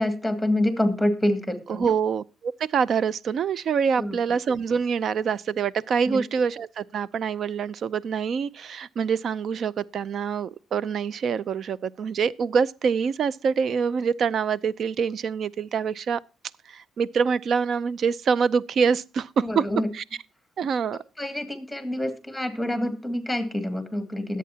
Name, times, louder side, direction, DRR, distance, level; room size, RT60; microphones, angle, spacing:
voice 1, 0.0-1.9 4.0-4.2 6.1-6.2 19.4-19.9 21.2-24.4, left 1 dB, ahead, 2.2 m, -26 dB
voice 2, 1.7-16.2 16.7-19.6 19.9-20.0 20.6-21.0, right 6 dB, 60° right, 0.5 m, -25 dB
21.0 x 8.4 x 2.8 m
cardioid pair, 90°, 0 cm